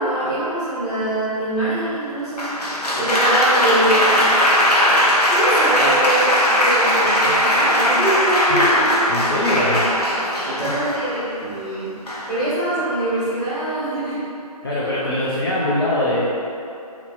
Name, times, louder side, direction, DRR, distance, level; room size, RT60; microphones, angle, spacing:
voice 1, 0.0-4.3 5.3-9.0 9.3-9.8 10.4-11.9 12.3-14.2 15.0-15.2, right 1 dB, ahead, -20 dB, 0.8 m, -24 dB
Applause, 2.4-11.2 12.1-12.5, equal, 75° left, 0.8 m, -18 dB
voice 2, 9.1-9.8 10.6-10.8 14.6-16.3, left 1 dB, 35° left, -8 dB, 0.4 m, -22 dB
2.9 x 2.7 x 3.9 m, 2.7 s
figure-of-eight pair, 150°, 20 cm